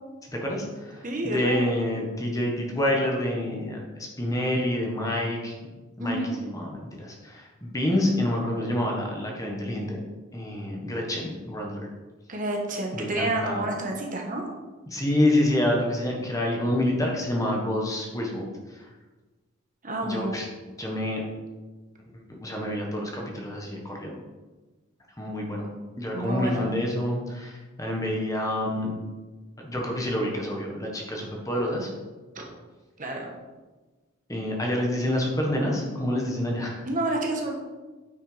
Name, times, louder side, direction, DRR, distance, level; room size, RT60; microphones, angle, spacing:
voice 1, 0.3-5.5 6.0-10.0 10.3-11.8 12.9-13.6 14.9-18.4 20.1-20.5 20.8-21.2 22.4-24.1 25.2-25.7 26.0-28.9 29.6-31.9 34.3-36.8, left 1 dB, 15° left, -1 dB, 1.5 m, -27 dB
voice 2, 1.0-1.6 6.0-6.4 12.3-14.5 19.8-20.4 26.1-26.6 32.3-32.5 33.0-33.3 36.9-37.6, right 1 dB, 35° right, 1 dB, 1.4 m, -29 dB
9.0 x 6.8 x 5.1 m, 1.2 s
head